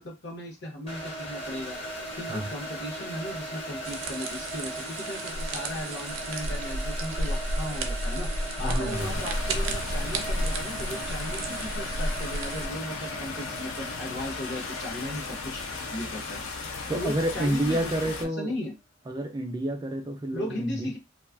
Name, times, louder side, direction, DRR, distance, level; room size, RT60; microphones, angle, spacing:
voice 1, 0.0-1.8 2.2-8.3 8.6-15.6 15.9-16.4 16.9-18.7 20.3-21.0, left 1 dB, 60° left, 0.9 m, -37 dB
sound 1, 0.9-17.7, right 1 dB, 30° left, 0.7 m, -39 dB
sound 2, 3.8-12.7, right 1 dB, 85° right, 0.5 m, -32 dB
voice 2, 8.6-9.2 16.9-18.5 19.1-20.9, right 1 dB, 20° right, 0.3 m, -29 dB
sound 3, 8.9-18.2, left 4 dB, 80° left, 0.5 m, -36 dB
2.5 x 2.3 x 2.4 m
head